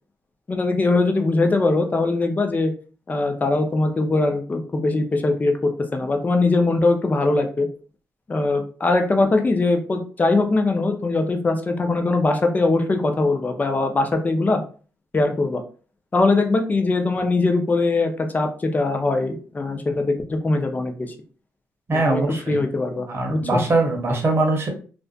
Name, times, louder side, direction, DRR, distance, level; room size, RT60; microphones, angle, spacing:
voice 1, 0.5-2.7 3.1-7.7 8.3-14.6 15.1-15.6 16.1-21.1 21.9-23.6, left 3 dB, 30° left, 5 dB, 0.6 m, -21 dB
voice 2, 21.9-22.6 23.1-24.7, right 2 dB, 40° right, 2 dB, 0.9 m, -21 dB
2.5 x 2.2 x 2.4 m, 0.38 s
cardioid pair, 70°, 6 cm